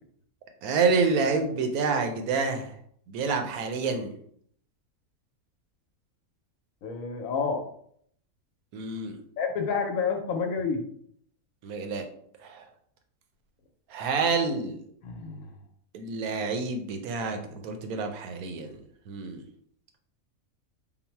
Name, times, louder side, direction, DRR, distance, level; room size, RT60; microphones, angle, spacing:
voice 1, 0.6-2.7 3.1-4.1 8.7-9.2 11.6-12.0 12.4-12.7 13.9-14.8 15.9-18.8 19.1-19.4, right 4 dB, 90° right, 5 dB, 1.1 m, -28 dB
voice 2, 6.8-7.6 9.4-10.8 15.0-15.5, left 5 dB, 75° left, 4 dB, 1.0 m, -29 dB
3.9 x 2.0 x 4.4 m, 0.65 s
omnidirectional pair, 1.5 m